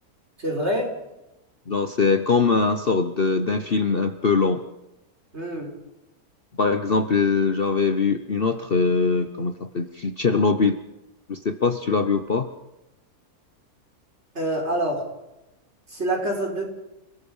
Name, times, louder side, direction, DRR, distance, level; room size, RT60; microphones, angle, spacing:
voice 1, 0.4-0.9 5.3-5.7 14.4-15.0 15.9-16.7, right 1 dB, 45° right, 1 dB, 5.5 m, -26 dB
voice 2, 1.7-4.6 6.6-10.8 11.3-12.5, left 4 dB, 40° left, 9 dB, 1.1 m, -22 dB
29.5 x 19.0 x 5.6 m, 0.94 s
omnidirectional pair, 1.6 m